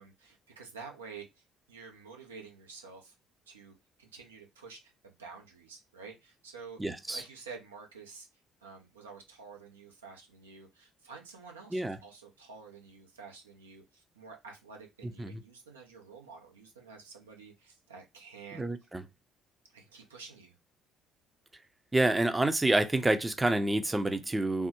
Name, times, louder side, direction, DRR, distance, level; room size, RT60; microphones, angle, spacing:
voice 1, 0.0-3.1 3.5-6.8 7.1-8.3 8.6-18.7 19.7-20.6, right 5 dB, 90° right, 0.7 m, -49 dB
voice 2, 6.8-7.2 11.7-12.0 15.2-15.4 18.5-19.0 21.9-24.7, right 2 dB, 15° right, 0.5 m, -28 dB
3.4 x 2.1 x 2.9 m
hypercardioid pair, 50°, 0 cm